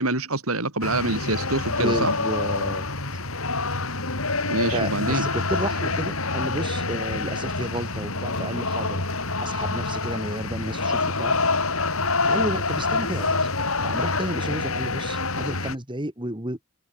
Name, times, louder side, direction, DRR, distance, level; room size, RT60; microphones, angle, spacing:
voice 1, 0.0-2.1 4.5-5.3, right 2 dB, 70° right, 5.3 m, -26 dB
sound 1, 0.8-15.8, left 3 dB, 70° left, 5.7 m, -26 dB
voice 2, 1.7-2.8 4.4-9.0 9.4-11.3 12.2-13.5 13.8-16.6, right 1 dB, 20° right, 3.1 m, -32 dB
head